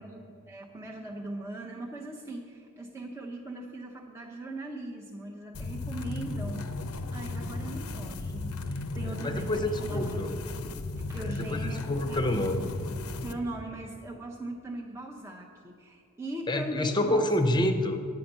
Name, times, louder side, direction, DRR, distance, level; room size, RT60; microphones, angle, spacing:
voice 1, 0.0-6.6 7.1-10.2 10.9-11.8 12.1-12.2 13.2-17.3, right 1 dB, 15° right, -1 dB, 0.7 m, -39 dB
sound 1, 5.5-13.3, left 2 dB, 75° left, 0.6 m, -35 dB
voice 2, 9.0-10.3 11.2-12.7 16.5-18.0, left 1 dB, 20° left, 6 dB, 0.8 m, -28 dB
9.6 x 5.7 x 7.9 m, 2.4 s
head